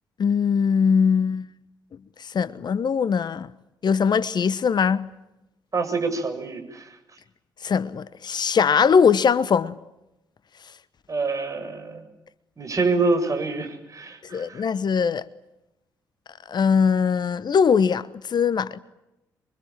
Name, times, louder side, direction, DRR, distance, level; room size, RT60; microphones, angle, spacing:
voice 1, 0.2-1.5 2.2-3.5 3.8-5.1 7.6-9.7 14.3-15.3 16.5-18.8, left 6 dB, 45° left, 1.0 m, -21 dB
voice 2, 5.7-7.0 11.1-12.0 12.6-14.6, right 3 dB, 30° right, 7.7 m, -26 dB
28.0 x 24.0 x 9.0 m
figure-of-eight pair, 45°, 10 cm